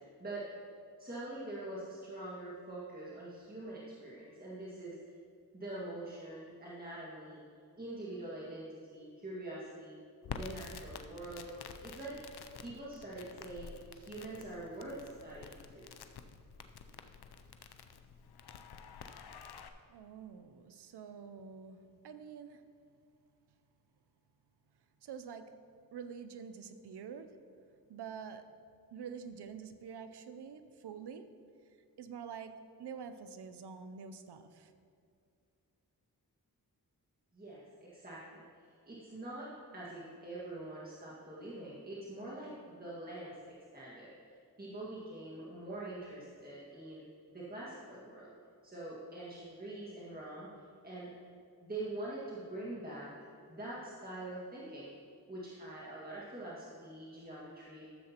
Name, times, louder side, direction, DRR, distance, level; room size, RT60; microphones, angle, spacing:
voice 1, 1.0-5.0 5.5-7.4 7.8-10.0 10.3-11.5 11.8-12.2 12.6-15.8 37.3-37.6 37.9-43.3 43.7-44.1 44.6-47.0 47.3-48.3 48.6-51.1 51.6-53.1 53.5-54.9 55.3-57.9, right 2 dB, 25° right, -7 dB, 1.8 m, -44 dB
Crackle, 10.2-19.7, left 6 dB, 80° left, 0.6 m, -49 dB
voice 2, 19.9-22.6 25.0-25.5 25.9-27.3 27.9-28.5 28.9-31.3 32.0-34.7, right 6 dB, 90° right, 9 dB, 0.6 m, -47 dB
13.5 x 7.5 x 2.9 m, 2.4 s
cardioid pair, 45°, 38 cm